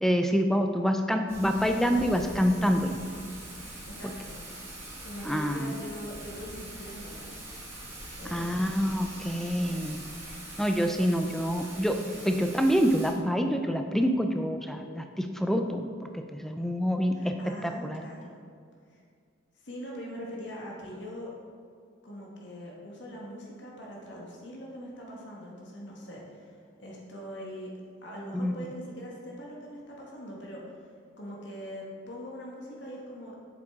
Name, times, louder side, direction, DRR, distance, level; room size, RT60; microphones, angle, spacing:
voice 1, 0.0-3.0 4.0-4.1 5.2-5.8 8.3-10.0 10.6-18.0 28.3-28.7, equal, ahead, 5 dB, 0.4 m, -27 dB
Thunder / Rain, 1.3-13.1, right 1 dB, 15° right, 1.3 m, -43 dB
voice 2, 3.5-4.4 5.0-7.4 8.2-8.8 17.1-18.4 18.9-19.0 19.5-21.3 22.0-27.7 28.0-33.4, equal, 60° left, -3 dB, 1.5 m, -42 dB
7.7 x 7.5 x 3.6 m, 2.3 s
head